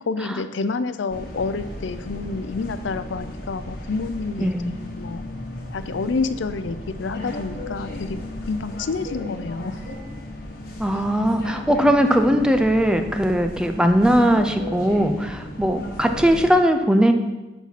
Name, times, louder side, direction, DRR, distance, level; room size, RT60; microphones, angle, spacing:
voice 1, 0.1-5.2 5.7-8.2 8.5-9.8 10.9-11.0, left 4 dB, 80° left, 11 dB, 0.5 m, -28 dB
sound 1, 1.1-16.5, left 1 dB, 50° left, 1.3 m, -35 dB
voice 2, 4.4-4.7 10.8-17.1, equal, 5° right, 6 dB, 0.4 m, -19 dB
7.2 x 5.5 x 5.9 m, 1.1 s
head